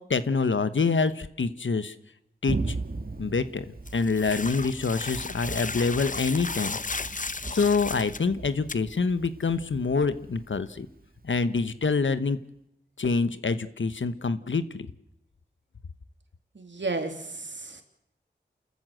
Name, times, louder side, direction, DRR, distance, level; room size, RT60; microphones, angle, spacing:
voice 1, 0.0-1.9 2.4-2.7 3.2-3.7 3.9-6.8 7.5-10.9 11.2-12.4 13.0-14.9, left 4 dB, 85° left, 13 dB, 1.1 m, -26 dB
Thunder, 2.5-11.9, right 3 dB, 50° right, 1.7 m, -38 dB
sound 1, 3.9-8.2 8.7-8.8, left 3 dB, 45° left, 0.8 m, -35 dB
voice 2, 16.5-17.8, right 3 dB, 75° right, 6 dB, 3.0 m, -33 dB
28.5 x 14.0 x 7.9 m, 0.82 s
wide cardioid pair, 45°, 19 cm